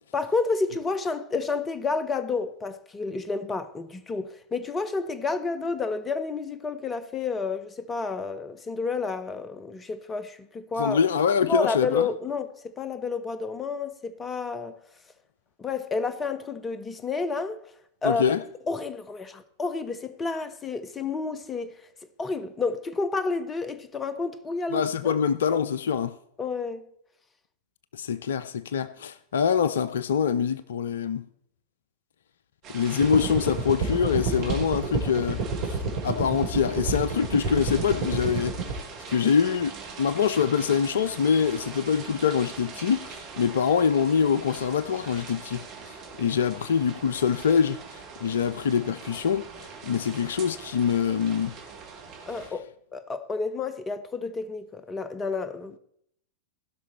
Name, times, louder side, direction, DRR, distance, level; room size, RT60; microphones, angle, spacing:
voice 1, 0.1-11.0 11.4-14.8 15.6-17.6 18.0-18.2 18.7-21.7 22.2-24.9 25.5-25.6 26.4-26.9 52.3-52.6 52.9-55.8, left 4 dB, 20° left, 0.7 m, -30 dB
voice 2, 10.8-12.1 18.0-18.4 24.7-26.1 27.9-31.2 32.7-35.4 35.7-35.8 36.0-38.6 39.1-45.7 46.2-49.5 49.8-51.5, left 7 dB, 60° left, 0.4 m, -24 dB
sound 1, 32.6-52.5, right 5 dB, 40° right, 2.2 m, -42 dB
sound 2, 33.0-38.7, right 3 dB, 55° right, 2.6 m, -29 dB
15.5 x 5.9 x 4.3 m
figure-of-eight pair, 90°, 0 cm